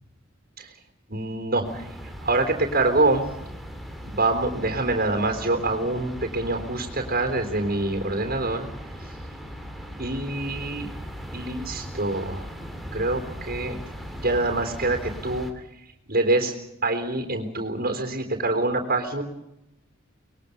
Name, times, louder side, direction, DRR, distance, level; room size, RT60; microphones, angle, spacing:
voice 1, 1.1-1.8 2.2-3.3 4.0-8.7 10.0-10.9 11.3-12.4 12.9-13.8 14.2-15.5 16.1-16.5 16.8-19.2, right 2 dB, 50° right, 4 dB, 3.8 m, -25 dB
sound 1, 1.6-15.5, equal, ahead, 2.7 m, -38 dB
24.0 x 21.5 x 6.7 m, 0.85 s
head